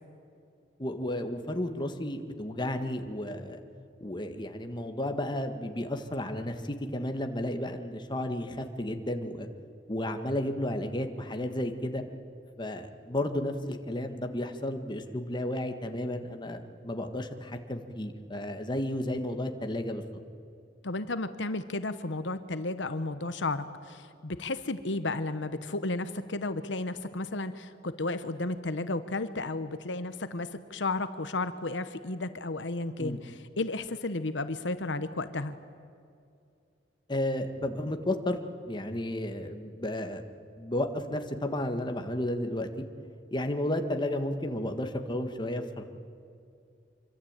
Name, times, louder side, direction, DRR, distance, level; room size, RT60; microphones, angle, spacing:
voice 1, 0.8-3.6 4.0-9.5 9.9-12.0 12.6-20.0 33.0-33.2 37.1-38.4 38.6-40.2 40.6-42.7 43.3-45.8, left 1 dB, 25° left, 6 dB, 1.6 m, -32 dB
voice 2, 20.8-35.5, left 2 dB, 75° left, 11 dB, 1.1 m, -33 dB
25.5 x 24.0 x 9.0 m, 2.5 s
head